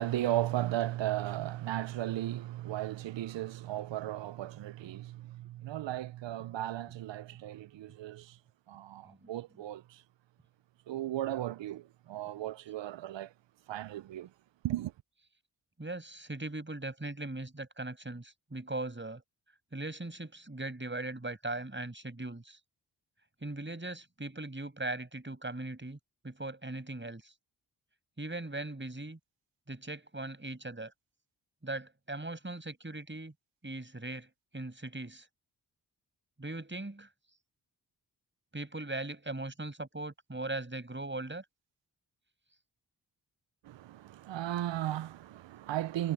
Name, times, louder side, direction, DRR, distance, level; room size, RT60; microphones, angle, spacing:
voice 1, 0.0-8.2 8.7-9.0 9.3-9.8 10.9-11.8 12.1-13.3 13.7-14.3 14.6-14.9 43.7-46.1, right 13 dB, 80° right, 0.6 m, -35 dB
voice 2, 15.8-19.2 19.7-22.6 23.4-26.0 26.2-27.3 28.2-29.2 29.7-30.9 31.6-33.3 33.6-35.3 36.4-37.1 38.5-41.4, right 2 dB, 25° right, 6.1 m, -39 dB
cardioid pair, 45°, 44 cm